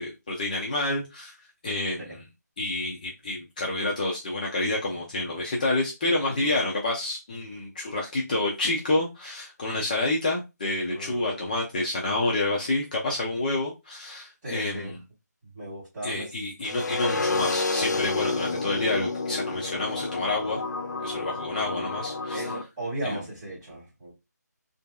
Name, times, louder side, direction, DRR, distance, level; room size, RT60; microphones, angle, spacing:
voice 1, 0.0-1.4 1.6-2.2 2.6-15.0 16.0-20.6 21.0-22.5 23.0-23.2, left 2 dB, 25° left, 0.5 m, -28 dB
voice 2, 10.9-11.4 14.4-14.9 15.5-16.3 16.6-16.7 22.3-24.1, right 1 dB, 20° right, 1.6 m, -36 dB
sound 1, 16.6-22.6, left 3 dB, 75° left, 0.5 m, -29 dB
2.9 x 2.6 x 2.3 m
figure-of-eight pair, 160°, 10 cm